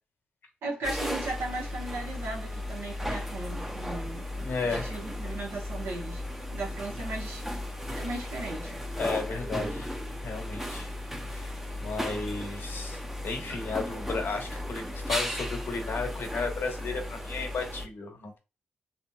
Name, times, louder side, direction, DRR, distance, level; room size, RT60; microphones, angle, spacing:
voice 1, 0.6-6.2 6.5-7.4 7.9-8.8, right 2 dB, 80° right, 1.0 m, -37 dB
sound 1, 0.8-17.9, left 1 dB, 10° right, 0.6 m, -35 dB
voice 2, 4.4-4.9 9.0-9.9 10.2-10.9 11.2-11.5 11.8-13.0 13.2-18.4, left 4 dB, 70° left, 0.9 m, -34 dB
2.9 x 2.8 x 2.2 m
supercardioid pair, 50°, 4 cm